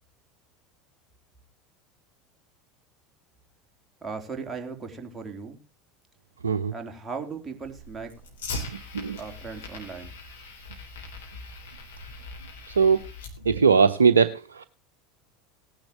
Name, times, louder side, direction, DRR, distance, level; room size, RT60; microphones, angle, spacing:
voice 1, 4.0-5.6 6.7-8.1 9.2-10.1, right 5 dB, 15° right, 3.2 m, -37 dB
Fire, 7.6-13.6, left 3 dB, 75° left, 3.1 m, -40 dB
voice 2, 8.7-9.2 12.8-13.0 13.4-14.6, right 5 dB, 80° right, 0.6 m, -20 dB
18.5 x 10.5 x 3.0 m
figure-of-eight pair, 75°, 0 cm